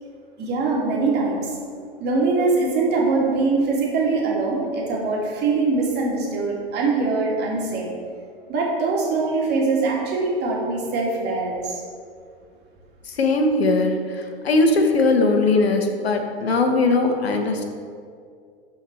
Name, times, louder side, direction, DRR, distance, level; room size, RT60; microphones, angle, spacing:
voice 1, 0.4-1.5 2.0-7.9 8.5-11.8, right 3 dB, 35° right, -3 dB, 2.4 m, -22 dB
voice 2, 13.1-17.6, left 3 dB, 80° left, 4 dB, 1.3 m, -20 dB
13.0 x 4.6 x 4.5 m, 2.2 s
hypercardioid pair, 100°, 31 cm